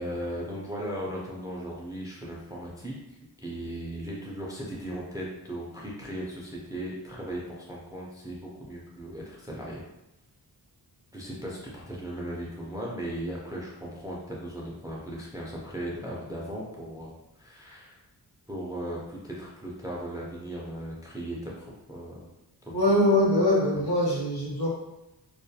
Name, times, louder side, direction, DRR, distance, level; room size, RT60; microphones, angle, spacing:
voice 1, 0.0-3.0 3.4-9.8 11.1-17.1 17.4-18.0 18.5-22.3 22.7-22.8 23.7-23.9, right 1 dB, 10° right, -4 dB, 0.3 m, -37 dB
voice 2, 22.7-24.7, left 1 dB, 65° left, -4 dB, 0.9 m, -23 dB
2.3 x 2.2 x 2.7 m, 0.93 s
wide cardioid pair, 135°, 41 cm